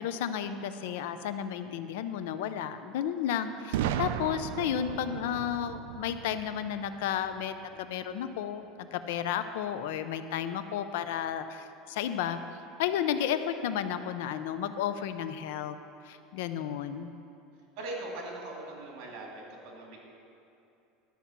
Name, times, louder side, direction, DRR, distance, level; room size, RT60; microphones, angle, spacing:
voice 1, 0.0-12.4 12.8-15.8 16.0-17.1, left 9 dB, 80° left, 10 dB, 0.6 m, -32 dB
Boom, 3.7-7.6, right 10 dB, 85° right, 0.4 m, -35 dB
voice 2, 17.8-20.0, right 2 dB, 60° right, -1 dB, 2.7 m, -40 dB
11.5 x 5.7 x 7.3 m, 2.7 s
supercardioid pair, 150°, 0 cm